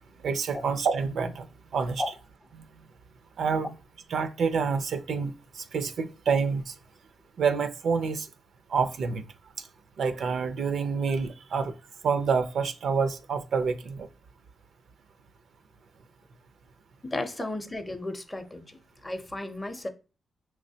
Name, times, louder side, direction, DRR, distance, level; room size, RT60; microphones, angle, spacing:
voice 1, 0.2-1.5 1.7-2.0 3.4-3.7 4.1-6.7 7.4-8.3 8.7-9.2 10.0-11.7 12.0-14.1, right 5 dB, 75° right, 0.4 m, -27 dB
voice 2, 17.0-19.9, left 2 dB, 15° left, 0.5 m, -34 dB
5.7 x 3.1 x 2.7 m
wide cardioid pair, 130°, 0 cm